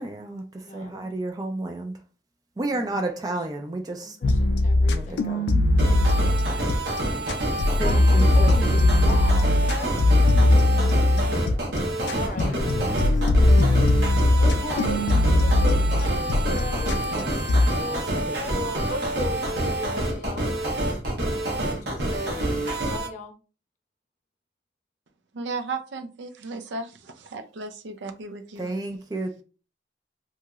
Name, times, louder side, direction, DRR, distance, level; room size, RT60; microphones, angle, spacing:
voice 1, 0.0-2.0 2.6-4.2 4.8-5.4 6.1-6.3 7.8-8.5 11.0-11.5 12.3-13.1 17.2-17.3 17.7-18.5 28.6-29.4, right 2 dB, 20° right, 0.3 m, -32 dB
voice 2, 0.6-1.0 2.7-3.0 4.0-5.6 7.8-10.2 12.1-12.6 14.4-17.4 17.7-18.2 18.5-21.2 21.6-22.3 22.8-23.3, left 2 dB, 40° left, 0.7 m, -37 dB
sound 1, 4.2-7.0 7.3-11.6 12.1-17.2 17.5-17.7, left 2 dB, 70° left, 0.3 m, -20 dB
sound 2, 5.8-23.1, right 1 dB, 60° right, 0.8 m, -27 dB
sound 3, 10.3-19.1, left 1 dB, ahead, 0.8 m, -44 dB
voice 3, 25.3-28.6, right 3 dB, 80° right, 0.5 m, -35 dB
2.8 x 2.8 x 2.3 m
head